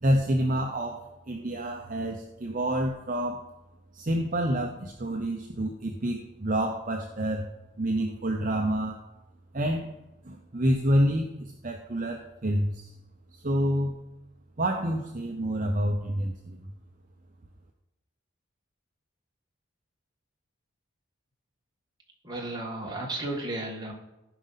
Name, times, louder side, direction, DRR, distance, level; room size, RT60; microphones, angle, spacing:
voice 1, 0.0-3.4 3.9-7.5 7.8-9.0 9.5-9.9 10.2-12.9 13.3-14.0 14.6-16.6, equal, 40° right, 2 dB, 0.7 m, -28 dB
voice 2, 22.2-23.9, right 2 dB, 20° right, -1 dB, 1.7 m, -33 dB
15.0 x 5.2 x 4.1 m, 0.96 s
head